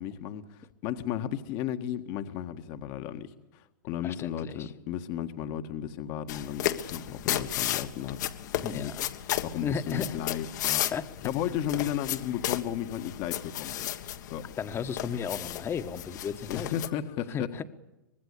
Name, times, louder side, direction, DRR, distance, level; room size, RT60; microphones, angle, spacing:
voice 1, 0.0-8.9 9.4-10.9 11.2-13.9 14.3-14.4 16.5-17.6, left 10 dB, 45° left, 7 dB, 1.7 m, -34 dB
voice 2, 4.0-4.7 8.6-9.1 9.6-10.2 10.9-11.0 14.6-16.7 17.3-17.6, left 7 dB, 25° left, 10 dB, 1.5 m, -34 dB
sound 1, 6.3-16.9, left 12 dB, 65° left, 1.8 m, -34 dB
25.0 x 20.5 x 8.3 m, 1.0 s
hypercardioid pair, 115°, 10 cm